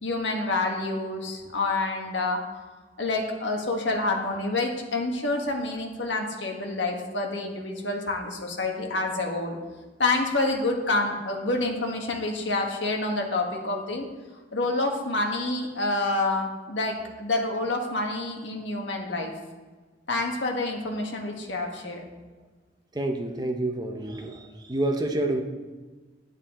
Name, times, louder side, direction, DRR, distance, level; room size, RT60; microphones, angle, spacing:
voice 1, 0.0-2.4 3.0-9.6 10.0-14.1 14.5-19.3 20.1-22.1, left 2 dB, 90° left, 1 dB, 1.5 m, -28 dB
voice 2, 22.9-25.4, right 1 dB, 25° right, 4 dB, 0.9 m, -28 dB
9.5 x 8.8 x 3.7 m, 1.3 s
head